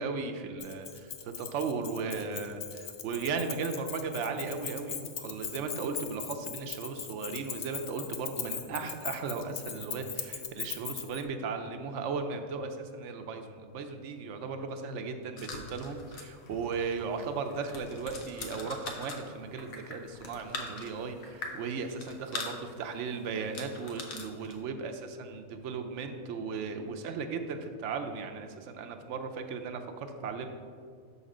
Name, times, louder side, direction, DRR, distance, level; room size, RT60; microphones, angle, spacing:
voice 1, 0.0-30.5, right 4 dB, 65° right, 6 dB, 0.9 m, -36 dB
Keys jangling, 0.6-11.2, left 9 dB, 65° left, 0.8 m, -39 dB
sound 1, 15.4-24.6, left 3 dB, 80° left, 1.2 m, -43 dB
6.5 x 4.1 x 5.0 m, 2.1 s
omnidirectional pair, 1.4 m